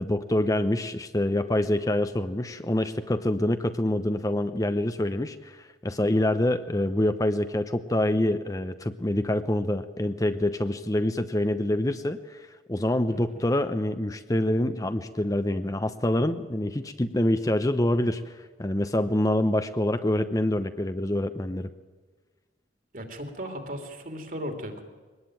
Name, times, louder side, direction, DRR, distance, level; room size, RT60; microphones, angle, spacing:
voice 1, 0.0-21.7, left 1 dB, 20° left, 10 dB, 0.8 m, -26 dB
voice 2, 22.9-24.8, equal, 45° right, 5 dB, 3.0 m, -36 dB
23.0 x 19.5 x 9.1 m, 1.4 s
head